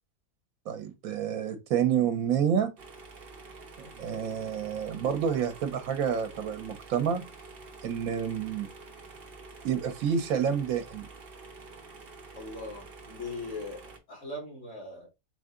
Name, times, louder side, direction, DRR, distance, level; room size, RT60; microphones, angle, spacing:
voice 1, 0.7-2.7 3.8-7.2 7.8-8.7 9.6-11.1, right 8 dB, 85° right, 1.2 m, -29 dB
sound 1, 2.8-14.0, right 3 dB, 45° right, 1.0 m, -48 dB
voice 2, 12.3-15.1, left 2 dB, 55° left, 2.1 m, -40 dB
3.9 x 2.7 x 3.6 m
omnidirectional pair, 1.5 m